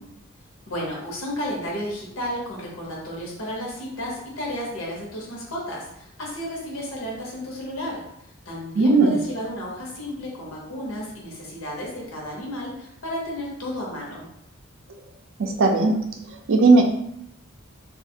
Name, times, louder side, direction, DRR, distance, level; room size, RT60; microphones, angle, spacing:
voice 1, 0.7-8.0 8.5-14.3, equal, 80° left, -3 dB, 0.9 m, -32 dB
voice 2, 8.8-9.2 15.4-16.0 16.5-16.8, right 3 dB, 65° right, 4 dB, 0.4 m, -16 dB
2.5 x 2.3 x 2.7 m, 0.78 s
head